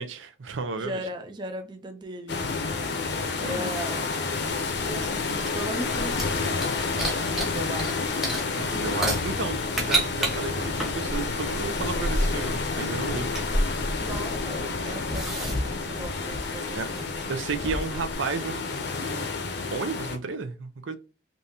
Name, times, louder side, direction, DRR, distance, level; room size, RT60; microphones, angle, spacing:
voice 1, 0.0-1.0 3.3-3.7 8.5-13.3 16.7-16.9 17.3-18.7 19.0-19.3 19.5-21.0, right 4 dB, 85° right, 0.6 m, -33 dB
voice 2, 0.8-2.5 3.4-4.1 4.8-6.7 6.9-8.2 8.5-8.8 14.0-17.3, right 1 dB, 25° right, 0.4 m, -38 dB
sound 1, 2.3-20.2, left 4 dB, 60° left, 0.7 m, -30 dB
sound 2, 4.7-7.9 8.2-18.2, right 1 dB, ahead, 0.9 m, -31 dB
3.6 x 2.7 x 2.7 m
head